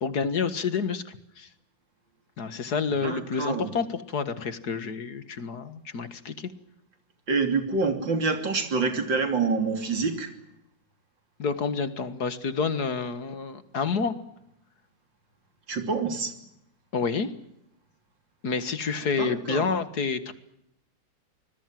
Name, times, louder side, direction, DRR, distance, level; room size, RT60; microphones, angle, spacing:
voice 1, 0.0-1.5 2.4-6.5 11.4-14.1 16.9-17.3 18.4-20.3, left 5 dB, 55° left, 12 dB, 2.0 m, -29 dB
voice 2, 3.0-3.7 7.3-10.3 15.7-16.3 19.2-19.7, right 4 dB, 70° right, 6 dB, 3.7 m, -27 dB
26.0 x 20.5 x 7.7 m, 0.78 s
omnidirectional pair, 2.1 m